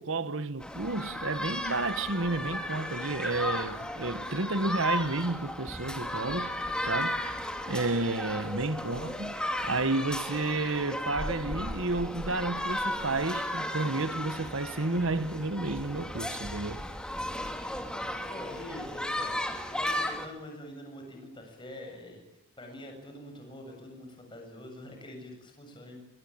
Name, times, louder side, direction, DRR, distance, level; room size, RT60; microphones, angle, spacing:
voice 1, 0.0-6.6 6.8-7.2 7.7-9.3 9.6-16.9, right 2 dB, 60° right, 1.3 m, -31 dB
sound 1, 0.6-20.3, left 1 dB, 5° left, 2.7 m, -35 dB
voice 2, 8.8-9.2 18.3-19.4 19.6-22.2 22.6-26.0, left 1 dB, 20° left, 7.8 m, -45 dB
24.5 x 23.0 x 8.8 m
head